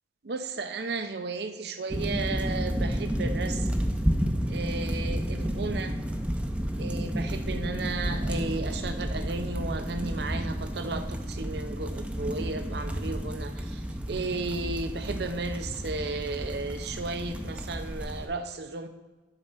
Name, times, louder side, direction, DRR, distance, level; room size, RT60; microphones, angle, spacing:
voice 1, 0.2-3.7 4.5-6.0 6.8-18.9, right 3 dB, 60° right, 8 dB, 0.6 m, -34 dB
sound 1, 1.9-18.3, equal, 5° right, 0.5 m, -31 dB
10.5 x 4.2 x 5.5 m, 1.2 s
head